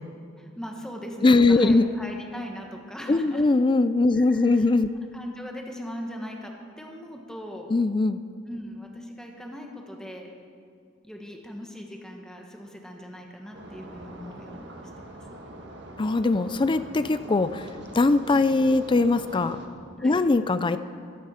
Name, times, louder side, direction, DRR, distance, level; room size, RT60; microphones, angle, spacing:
voice 1, 0.4-3.4 4.1-4.7 5.0-7.7 8.5-10.3 11.0-15.2 20.0-20.2, equal, 5° left, 1 dB, 1.4 m, -40 dB
voice 2, 1.2-1.9 3.1-5.0 7.7-8.2 16.0-17.7 17.9-19.6 20.0-20.8, left 3 dB, 25° left, 13 dB, 0.4 m, -21 dB
sound 1, 13.5-19.7, right 1 dB, 65° right, 1.7 m, -43 dB
14.0 x 13.5 x 5.7 m, 2.3 s
head